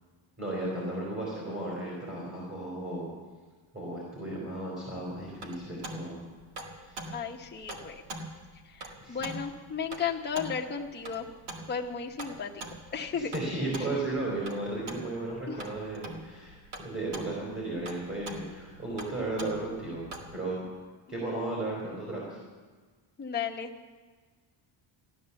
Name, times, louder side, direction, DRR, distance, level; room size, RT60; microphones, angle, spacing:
voice 1, 0.4-3.1 3.7-6.2 6.8-7.0 9.0-9.2 13.2-20.6 21.1-22.3, right 2 dB, 30° right, -5 dB, 4.0 m, -35 dB
sound 1, 4.9-20.4, right 2 dB, 55° right, 1.9 m, -44 dB
voice 2, 7.1-7.9 8.7-11.3 11.7-12.5 12.9-13.3 15.5-15.6 23.2-23.7, left 6 dB, 20° left, 0 dB, 1.0 m, -34 dB
15.0 x 11.0 x 7.0 m, 1.4 s
cardioid pair, 165°, 48 cm